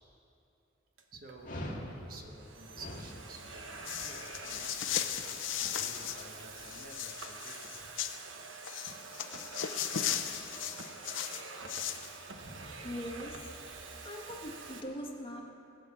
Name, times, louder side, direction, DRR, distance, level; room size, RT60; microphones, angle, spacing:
Domestic sounds home sounds, 1.0-1.4 2.1-14.8, right 3 dB, 90° right, 1.2 m, -47 dB
voice 1, 1.1-5.1 5.6-7.9 12.3-12.9, right 2 dB, 50° right, 3 dB, 1.3 m, -52 dB
Dog, 1.4-6.8, equal, 45° left, 2.1 m, -46 dB
sound 1, 3.9-6.3 6.6-8.2 8.6-12.1, left 10 dB, 85° left, 0.7 m, -36 dB
voice 2, 12.8-13.5 13.8-15.4, equal, 30° left, 0 dB, 1.6 m, -41 dB
19.0 x 8.2 x 7.3 m, 2.8 s
head